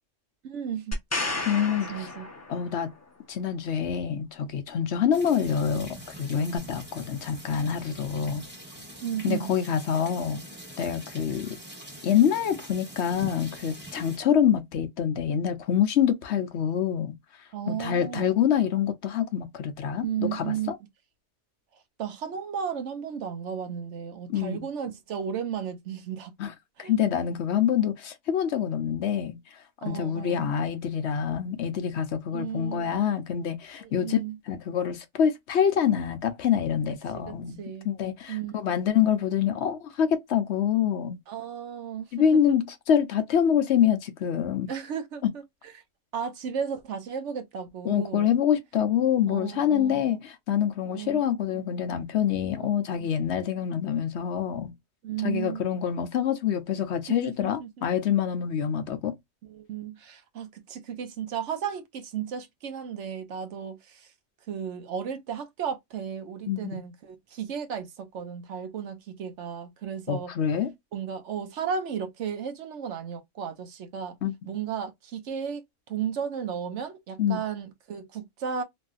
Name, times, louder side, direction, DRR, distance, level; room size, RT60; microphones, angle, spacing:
voice 1, 0.4-1.0 1.4-2.3 9.0-9.5 17.5-18.3 20.0-20.7 22.0-26.3 26.8-26.9 29.8-30.5 32.3-32.9 33.8-34.4 37.1-37.9 38.3-38.8 41.3-42.1 42.5-42.6 44.7-45.4 46.1-48.3 49.3-50.2 50.9-51.2 51.5-51.6 52.5-52.7 53.0-53.1 55.0-55.6 57.1-57.7 59.4-64.1 64.5-70.3 70.9-74.2 74.5-75.6 75.9-78.6, right 8 dB, 70° right, 1.0 m, -34 dB
sound 1, 0.9-2.9 6.6-6.7, left 2 dB, 15° left, 0.6 m, -32 dB
voice 2, 1.4-2.1 2.5-2.9 3.3-8.5 9.2-10.4 10.8-11.5 12.0-17.1 17.7-20.8 24.3-24.6 26.4-26.5 26.8-34.2 34.5-37.6 37.8-41.2 42.1-44.7 47.8-54.7 55.2-59.2 66.5-66.8 70.1-70.7 74.2-74.3 77.2-77.4, left 8 dB, 65° left, 0.9 m, -26 dB
sound 2, 5.1-14.2, right 1 dB, 10° right, 1.3 m, -44 dB
3.0 x 2.6 x 2.3 m
omnidirectional pair, 1.3 m